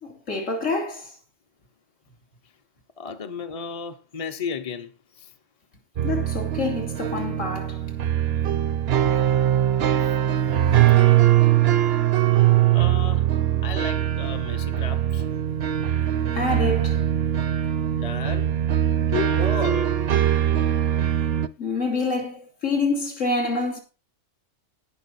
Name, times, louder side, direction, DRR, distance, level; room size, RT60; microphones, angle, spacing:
voice 1, 0.0-1.1 6.0-7.8 10.9-11.0 16.3-17.1 21.6-23.8, left 3 dB, 80° left, 3.1 m, -27 dB
voice 2, 3.0-5.3 12.7-13.3 13.6-15.2 17.9-18.6 19.1-20.0, left 5 dB, 30° left, 0.8 m, -33 dB
sound 1, 6.0-21.5, right 11 dB, 60° right, 0.9 m, -21 dB
18.0 x 6.2 x 4.2 m
omnidirectional pair, 1.3 m